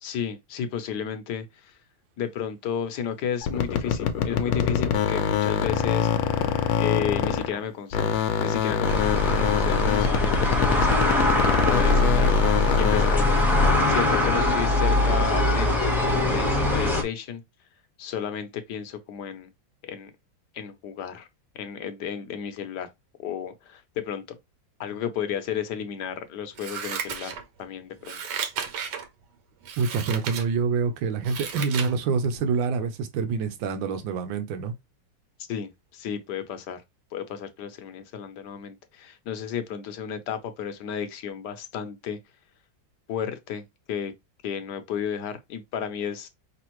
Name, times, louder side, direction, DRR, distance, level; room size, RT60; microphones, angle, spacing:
voice 1, 0.0-1.8 2.2-6.1 6.8-13.4 13.9-17.4 18.0-19.5 19.8-20.1 20.5-21.3 21.5-22.9 23.2-24.4 24.8-28.2 35.5-36.8 37.1-42.2 43.1-43.6 43.9-44.1 44.4-46.3, left 8 dB, 65° left, 1.3 m, -33 dB
sound 1, 3.4-7.6 7.9-13.3, left 8 dB, 85° left, 1.4 m, -24 dB
sound 2, 8.8-17.0, left 2 dB, ahead, 1.1 m, -22 dB
Scissors, 26.6-27.7 28.0-29.1 29.6-30.5 30.9-31.9 32.3-32.4, right 7 dB, 70° right, 1.4 m, -34 dB
voice 2, 29.8-34.7, right 5 dB, 85° right, 1.5 m, -26 dB
5.0 x 3.4 x 3.0 m
omnidirectional pair, 2.0 m